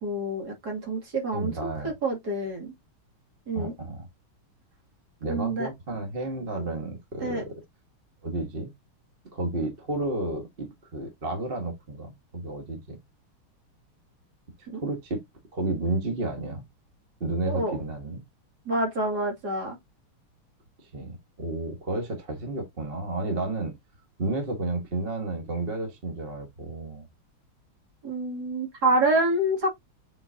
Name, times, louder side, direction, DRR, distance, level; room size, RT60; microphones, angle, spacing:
voice 1, 0.0-2.7 3.5-3.7 5.3-5.7 7.2-7.4 14.7-14.8 17.5-17.8 18.7-19.8 28.0-29.8, right 1 dB, 50° right, 2.9 m, -27 dB
voice 2, 1.3-1.9 3.5-4.1 5.2-7.5 8.2-8.7 9.3-13.0 14.7-15.2 15.5-16.7 17.2-18.2 20.8-23.7 24.2-27.1, right 2 dB, 30° right, 1.5 m, -31 dB
7.7 x 4.8 x 2.7 m
omnidirectional pair, 2.3 m